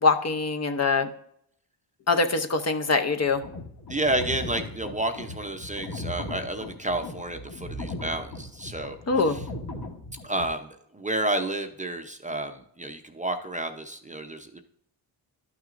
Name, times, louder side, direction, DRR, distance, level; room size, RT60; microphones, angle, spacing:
voice 1, 0.0-1.1 2.1-3.4 9.1-9.4, left 4 dB, 35° left, 7 dB, 0.7 m, -23 dB
sound 1, 3.3-10.5, left 2 dB, 55° left, 1.5 m, -38 dB
voice 2, 3.9-9.5 10.2-14.6, right 1 dB, 15° right, 6 dB, 0.6 m, -31 dB
11.5 x 6.1 x 2.5 m, 0.68 s
cardioid pair, 85°, 46 cm